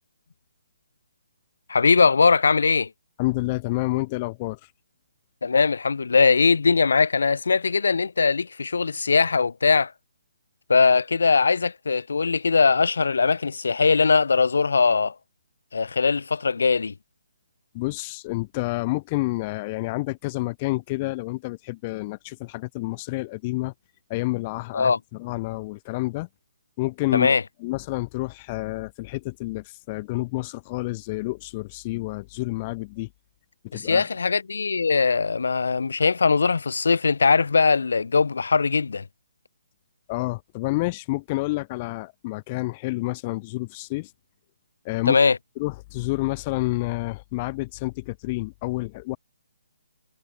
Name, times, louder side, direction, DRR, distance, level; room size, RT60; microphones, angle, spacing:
voice 1, 1.7-2.9 5.4-9.9 10.7-15.1 15.7-16.9 24.7-25.0 27.1-27.4 33.7-39.0 45.1-45.4, left 4 dB, 80° left, 2.9 m, -20 dB
voice 2, 3.2-4.6 17.7-23.7 24.1-26.3 26.8-27.4 27.6-33.1 33.6-34.1 40.1-44.1 44.8-45.2 45.6-49.2, left 22 dB, 20° left, 2.6 m, -29 dB
hypercardioid pair, 170°, 0 cm